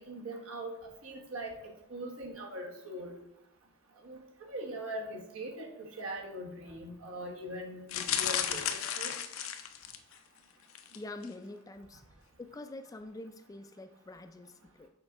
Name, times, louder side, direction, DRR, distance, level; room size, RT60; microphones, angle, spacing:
voice 1, 0.1-3.1 4.0-9.1, right 1 dB, 80° right, 0 dB, 1.4 m, -41 dB
sound 1, 7.9-10.2 10.7-11.0 11.2-11.3, left 9 dB, 80° left, 0.6 m, -34 dB
voice 2, 10.9-12.0 12.4-14.9, left 2 dB, 15° left, 9 dB, 0.3 m, -45 dB
6.5 x 3.8 x 4.6 m, 0.81 s
head